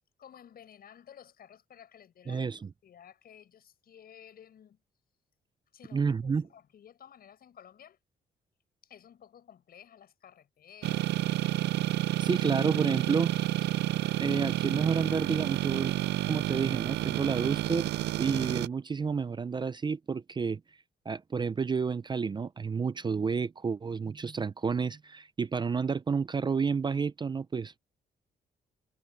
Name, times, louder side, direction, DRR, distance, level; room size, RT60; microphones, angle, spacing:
voice 1, 0.2-4.8 5.7-8.0 8.8-11.7, left 9 dB, 60° left, 7.7 m, -54 dB
voice 2, 2.3-2.6 5.9-6.5 12.2-13.5 14.2-15.9 16.3-17.9 18.2-20.6 21.1-27.7, right 5 dB, 25° right, 0.5 m, -30 dB
sound 1, 10.8-18.7, right 15 dB, 90° right, 0.5 m, -30 dB
cardioid pair, 110°, 17 cm